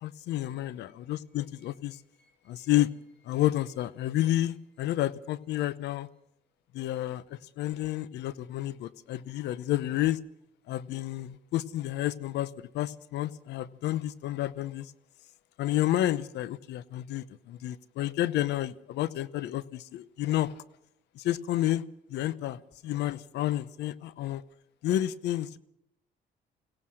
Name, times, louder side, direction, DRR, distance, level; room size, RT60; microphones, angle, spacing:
voice 1, 0.0-2.0 2.5-2.9 3.3-6.1 6.7-10.2 10.7-12.5 12.7-14.9 15.6-20.5 21.2-21.8 22.1-24.4 24.8-25.6, left 14 dB, 80° left, 18 dB, 0.9 m, -30 dB
voice 2, 1.6-2.7, right 1 dB, 5° left, 4 dB, 2.0 m, -69 dB
23.5 x 17.5 x 6.4 m, 0.77 s
cardioid pair, 80°, 17 cm